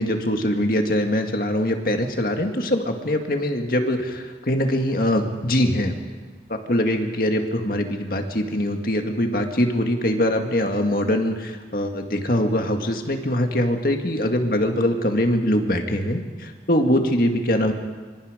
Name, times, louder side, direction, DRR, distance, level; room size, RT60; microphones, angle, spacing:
voice 1, 0.0-6.0 6.5-17.7, left 1 dB, 55° left, 4 dB, 2.1 m, -23 dB
25.5 x 24.5 x 5.2 m, 1.4 s
head